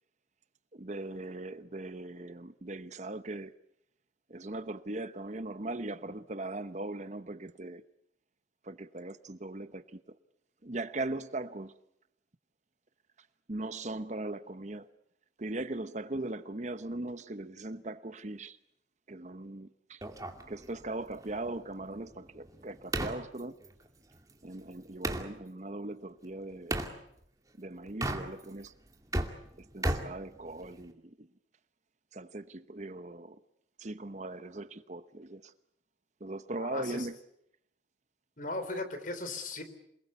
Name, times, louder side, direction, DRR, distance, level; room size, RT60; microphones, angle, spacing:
voice 1, 0.7-3.5 4.3-7.8 8.6-10.0 10.6-11.7 13.5-14.9 15.4-18.6 19.1-20.0 20.5-23.5 24.4-26.8 27.6-28.7 29.7-31.3 32.1-33.4 33.8-35.5 36.2-37.2, right 2 dB, 40° right, 1.0 m, -39 dB
sound 1, 20.0-25.3 26.7-27.0 27.9-28.6 28.9-30.9, right 1 dB, 20° right, 2.4 m, -36 dB
voice 2, 36.6-37.1 38.4-39.6, left 2 dB, 45° left, 3.9 m, -37 dB
28.0 x 20.5 x 8.2 m
head